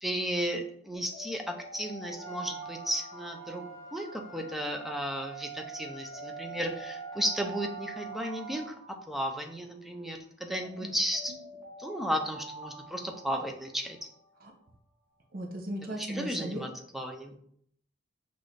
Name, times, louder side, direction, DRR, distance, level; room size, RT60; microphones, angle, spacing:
voice 1, 0.0-11.3 11.8-14.0 15.8-17.3, equal, ahead, 3 dB, 0.4 m, -34 dB
Alarm, 0.9-5.1 5.6-10.1 10.6-14.4, equal, 25° left, 1.9 m, -48 dB
Trumpet, 2.2-8.7, right 7 dB, 80° right, 0.9 m, -44 dB
voice 2, 15.3-16.7, right 1 dB, 45° right, 2 dB, 0.6 m, -37 dB
6.0 x 2.5 x 3.2 m, 0.66 s
head